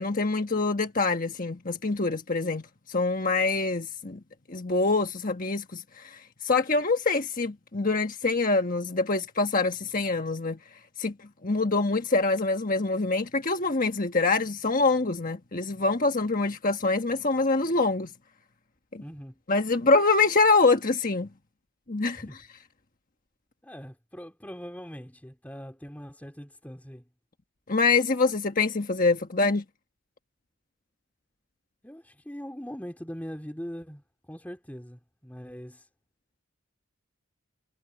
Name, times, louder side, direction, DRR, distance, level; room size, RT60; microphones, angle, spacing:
voice 1, 0.0-4.2 4.5-10.6 11.0-18.1 18.9-19.0 19.5-21.3 21.9-22.4 27.7-29.6, left 3 dB, 40° left, 1.4 m, -25 dB
voice 2, 19.0-19.4 22.1-22.4 23.6-27.0 31.8-35.8, equal, 5° left, 2.9 m, -41 dB
head